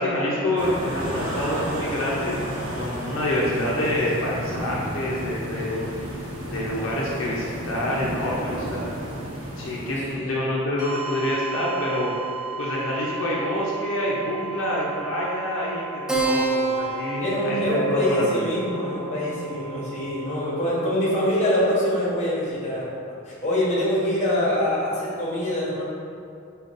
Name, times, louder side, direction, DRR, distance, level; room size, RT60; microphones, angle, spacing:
voice 1, 0.0-2.4 2.8-6.1 6.4-8.9 9.6-12.1 12.6-15.9 16.2-18.4, left 1 dB, 75° left, -5 dB, 0.5 m, -27 dB
sound 1, 0.6-10.2, equal, 75° right, 0.6 m, -32 dB
voice 2, 10.1-10.4 17.2-25.8, left 1 dB, 35° left, -6 dB, 0.9 m, -24 dB
sound 2, 10.8-20.4, right 4 dB, 50° right, 0.9 m, -36 dB
Keyboard (musical), 16.1-21.1, right 4 dB, 5° right, 0.3 m, -29 dB
5.2 x 2.2 x 2.5 m, 2.5 s
head